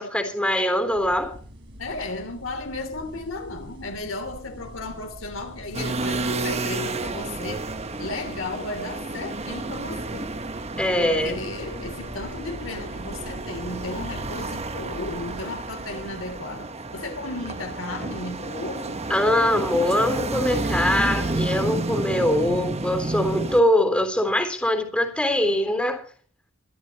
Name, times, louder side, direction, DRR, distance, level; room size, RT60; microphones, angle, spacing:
voice 1, 0.0-1.3 10.8-11.4 19.1-26.0, left 1 dB, 5° left, 3.5 m, -22 dB
sound 1, 0.8-16.4, equal, 60° right, 5.3 m, -44 dB
voice 2, 1.8-7.7 8.0-10.3 10.7-19.0, left 2 dB, 75° left, 3.1 m, -34 dB
sound 2, 5.7-23.6, right 2 dB, 30° right, 1.2 m, -31 dB
24.0 x 12.5 x 3.0 m
head